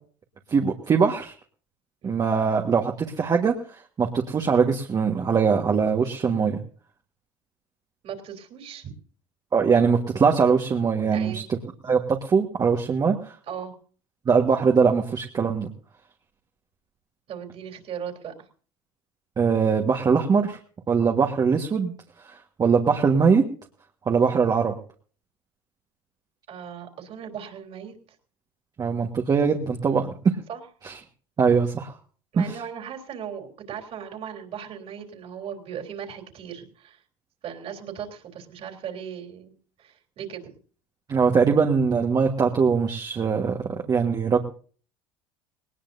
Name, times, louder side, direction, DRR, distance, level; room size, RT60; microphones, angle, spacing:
voice 1, 0.5-1.3 2.0-3.5 4.0-6.6 9.5-11.4 11.8-13.3 14.2-15.7 19.4-20.6 20.9-21.9 22.6-23.4 24.0-24.7 28.8-30.1 30.8-30.9 31.4-31.9 32.4-32.5 41.1-44.4, right 5 dB, 30° right, 1 dB, 1.6 m, -21 dB
voice 2, 8.0-8.9 11.1-11.5 13.5-13.7 17.3-18.3 26.5-28.0 30.5-30.6 32.3-37.0 37.4-39.5 39.8-40.5, right 8 dB, 50° right, 3 dB, 3.4 m, -37 dB
19.0 x 18.5 x 2.7 m, 0.43 s
supercardioid pair, 110°, 13 cm